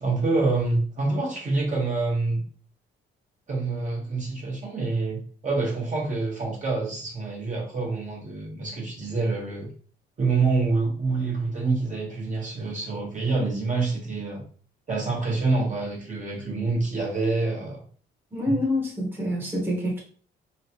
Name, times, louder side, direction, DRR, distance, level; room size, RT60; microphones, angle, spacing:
voice 1, 0.0-2.4 3.5-9.7 10.2-14.4 14.9-17.8 18.5-18.6, right 3 dB, 40° right, -3 dB, 1.2 m, -26 dB
voice 2, 18.3-20.0, left 1 dB, 10° right, -3 dB, 1.1 m, -26 dB
3.1 x 2.3 x 2.9 m, 0.43 s
cardioid pair, 90°, 20 cm